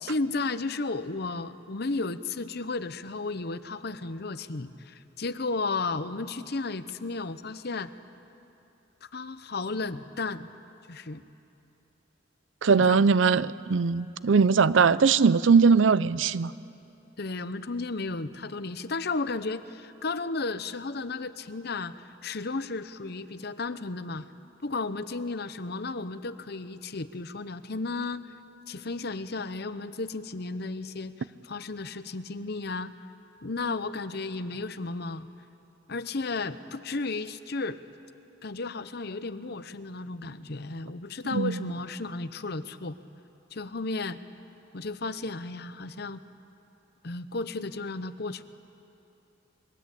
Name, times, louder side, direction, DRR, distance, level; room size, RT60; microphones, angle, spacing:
voice 1, 0.0-7.9 9.1-10.5 10.9-11.2 12.7-13.0 17.2-24.3 24.6-28.3 28.7-32.9 33.4-35.3 35.9-37.8 38.4-43.0 43.5-44.2 44.7-46.2 47.0-48.4, left 3 dB, 60° left, 12 dB, 0.9 m, -33 dB
voice 2, 12.6-16.5 41.3-41.5, right 5 dB, 80° right, 17 dB, 0.6 m, -20 dB
28.0 x 22.0 x 8.4 m, 2.8 s
head